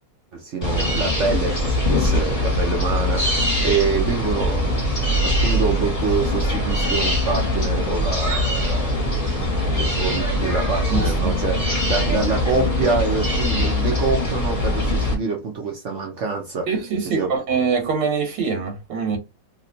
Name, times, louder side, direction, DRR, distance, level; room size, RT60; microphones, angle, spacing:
voice 1, 0.3-16.7 17.0-17.3, right 4 dB, 60° right, 0.8 m, -26 dB
sound 1, 0.6-15.1, left 1 dB, 20° left, 1.2 m, -22 dB
voice 2, 10.9-11.6 16.7-19.2, right 5 dB, 80° right, 1.6 m, -24 dB
3.2 x 2.9 x 2.7 m
omnidirectional pair, 2.0 m